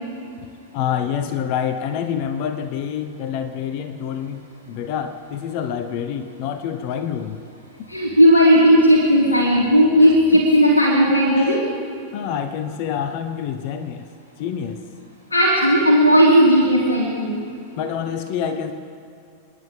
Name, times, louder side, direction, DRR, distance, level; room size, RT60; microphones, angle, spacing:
voice 1, 0.7-7.4 11.3-11.6 12.1-14.1 14.4-14.8 17.7-18.7, left 8 dB, 45° left, 9 dB, 0.9 m, -27 dB
voice 2, 7.9-11.7 15.3-17.4, equal, 80° left, -3 dB, 2.4 m, -15 dB
30.0 x 10.5 x 3.8 m, 2.5 s
figure-of-eight pair, 90°, 0 cm